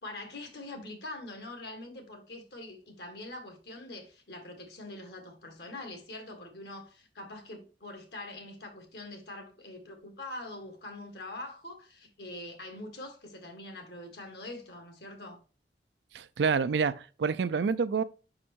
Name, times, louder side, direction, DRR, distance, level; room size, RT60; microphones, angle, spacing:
voice 1, 0.0-15.4, left 2 dB, 65° left, 1.8 m, -44 dB
voice 2, 16.1-18.0, right 5 dB, 75° right, 0.4 m, -28 dB
5.3 x 4.9 x 4.3 m
head